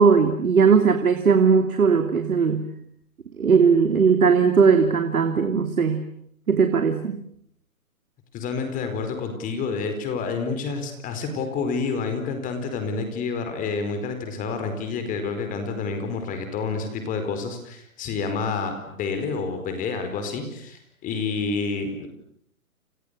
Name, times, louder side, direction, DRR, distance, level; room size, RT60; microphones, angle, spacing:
voice 1, 0.0-2.7 3.4-6.0 6.5-7.2, right 5 dB, 75° right, 7 dB, 3.2 m, -18 dB
voice 2, 8.3-22.1, left 4 dB, 20° left, 7 dB, 4.6 m, -29 dB
29.0 x 29.0 x 6.8 m, 0.69 s
hypercardioid pair, 145°, 44 cm